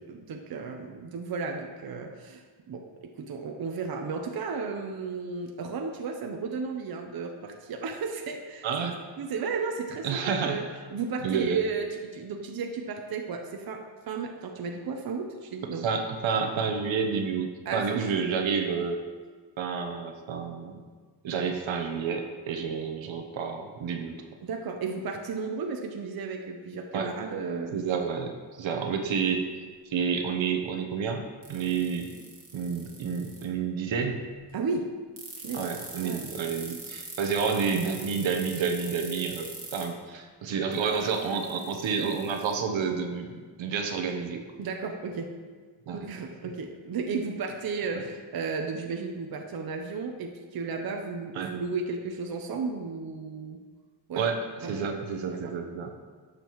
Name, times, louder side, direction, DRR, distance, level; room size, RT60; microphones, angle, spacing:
voice 1, 0.1-8.6 9.2-15.9 17.7-18.1 24.4-27.8 28.8-28.9 34.5-34.9 35.4-35.7 36.0-36.3 44.6-45.3 45.9-53.6 54.1-54.3 54.6-54.7 55.2-55.5, right 4 dB, 50° right, 3 dB, 0.8 m, -34 dB
voice 2, 8.6-9.0 10.0-10.6 11.2-11.6 15.8-19.0 19.6-20.8 21.2-24.2 26.9-27.1 27.7-28.3 28.6-29.4 29.9-31.2 31.5-32.1 32.5-34.2 35.5-44.4 45.9-46.0 46.4-46.6 47.9-48.0 51.3-51.5 54.2-56.0, right 6 dB, 80° right, 4 dB, 1.0 m, -29 dB
sound 1, 31.4-33.4 35.2-39.8 40.7-42.5, right 3 dB, 30° right, 1.6 m, -42 dB
12.5 x 6.9 x 3.1 m, 1.5 s
wide cardioid pair, 140°, 46 cm